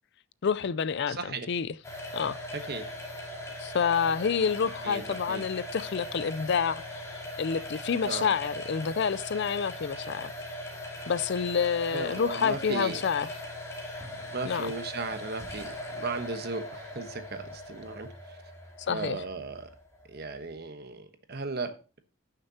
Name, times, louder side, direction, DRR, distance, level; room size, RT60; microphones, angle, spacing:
voice 1, 0.4-1.7 2.1-2.4 3.6-6.8 7.4-10.3 11.1-13.3 14.5-14.7 18.8-19.2, left 6 dB, 55° left, 0.4 m, -28 dB
voice 2, 1.1-1.5 2.5-2.8 4.8-5.4 8.0-8.3 11.9-13.0 14.3-18.4 18.9-19.7 20.1-22.0, right 3 dB, 50° right, 1.2 m, -36 dB
sound 1, 1.8-20.6, left 1 dB, 15° left, 2.5 m, -40 dB
17.5 x 6.6 x 2.8 m
head